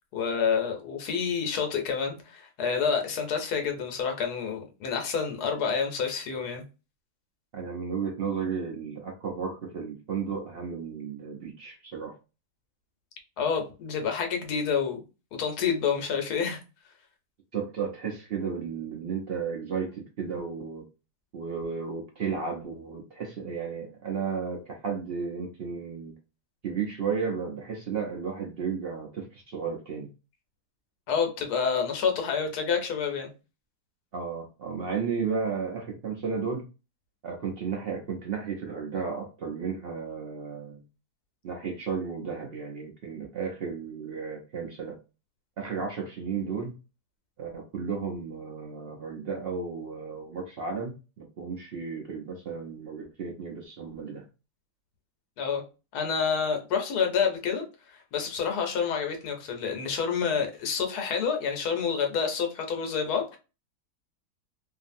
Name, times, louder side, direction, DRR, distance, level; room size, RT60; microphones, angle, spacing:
voice 1, 0.1-6.6 13.4-15.0 15.4-16.6 31.1-33.3 55.4-55.6 55.9-57.7 57.9-63.4, left 6 dB, 75° left, 1.2 m, -28 dB
voice 2, 7.5-12.1 17.5-20.9 21.3-26.1 26.6-30.1 34.1-36.7 37.2-40.8 41.4-45.0 45.6-46.8 47.4-54.2, right 6 dB, 70° right, 0.5 m, -33 dB
2.7 x 2.5 x 2.5 m
omnidirectional pair, 1.8 m